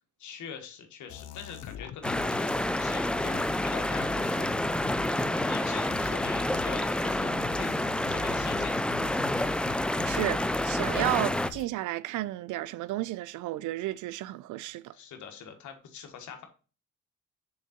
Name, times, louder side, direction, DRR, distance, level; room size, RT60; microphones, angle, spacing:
voice 1, 0.2-2.5 2.8-4.5 5.4-7.7 8.1-9.6 14.9-16.5, left 7 dB, 75° left, 1.5 m, -44 dB
sound 1, 1.1-11.7, left 9 dB, 60° left, 0.5 m, -42 dB
sound 2, 2.0-11.5, left 1 dB, 5° left, 0.3 m, -29 dB
voice 2, 10.1-14.9, right 16 dB, 80° right, 0.5 m, -32 dB
6.5 x 3.7 x 4.3 m
cardioid pair, 90°, 30 cm